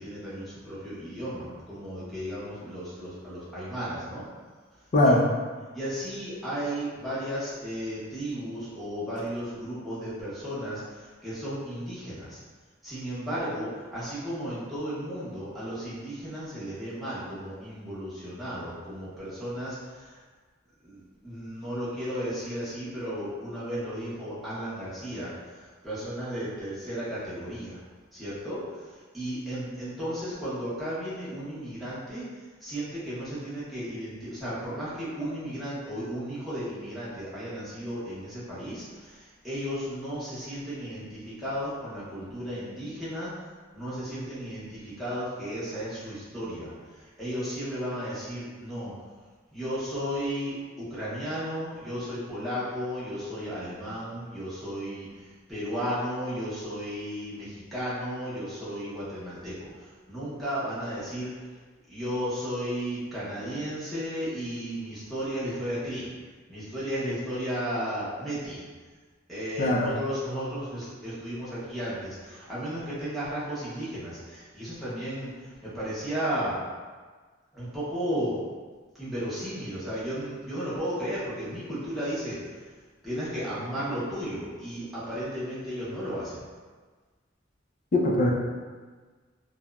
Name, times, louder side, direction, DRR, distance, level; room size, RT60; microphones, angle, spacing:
voice 1, 0.0-4.2 5.7-12.4 12.8-20.2 20.8-27.8 28.1-32.2 32.6-43.3 43.7-48.9 49.5-61.3 61.9-66.1 66.5-68.6 69.3-76.6 77.5-78.4 79.0-82.7 83.0-86.4, equal, ahead, -11 dB, 0.7 m, -34 dB
voice 2, 4.9-5.2 69.6-69.9 87.9-88.3, left 1 dB, 40° left, -2 dB, 0.4 m, -21 dB
2.8 x 2.0 x 2.3 m, 1.4 s
head